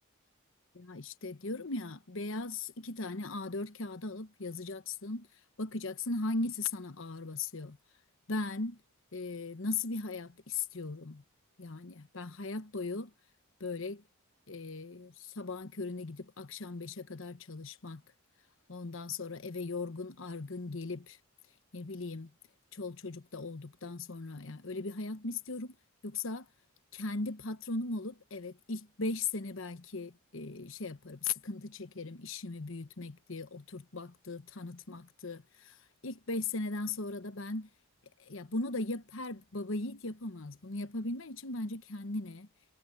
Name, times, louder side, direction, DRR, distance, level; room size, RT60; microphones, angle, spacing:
voice 1, 0.7-5.3 5.6-7.8 8.3-8.8 9.1-11.2 11.6-13.1 13.6-14.0 14.5-18.0 18.7-21.2 21.7-22.3 22.7-25.7 26.0-26.5 26.9-35.8 36.0-37.7 38.2-42.5, left 3 dB, 60° left, 1.1 m, -38 dB
head